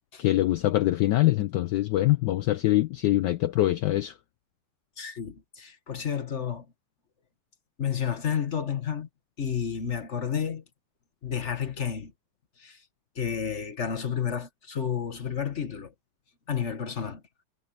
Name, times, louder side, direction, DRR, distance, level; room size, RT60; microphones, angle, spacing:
voice 1, 0.2-4.2, left 15 dB, 80° left, 1.0 m, -24 dB
voice 2, 5.0-6.6 7.8-9.1 9.4-10.6 11.2-12.1 12.6-12.8 13.1-15.9 16.5-17.2, left 8 dB, 35° left, 1.7 m, -31 dB
omnidirectional pair, 2.4 m